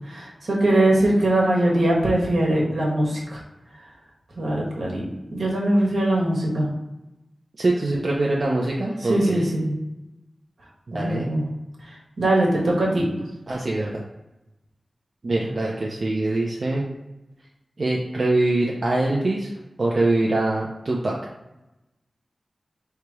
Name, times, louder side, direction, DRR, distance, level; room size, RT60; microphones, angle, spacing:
voice 1, 0.1-3.4 4.4-5.0 5.3-6.7 9.1-9.7 10.9-11.4 12.2-13.0, right 1 dB, 80° right, -3 dB, 1.4 m, -21 dB
voice 2, 7.6-9.4 10.9-11.3 13.5-14.0 15.2-16.9 17.8-19.5 19.8-21.2, right 2 dB, 55° right, -4 dB, 0.7 m, -23 dB
3.4 x 2.9 x 4.7 m, 0.96 s
wide cardioid pair, 70°, 0 cm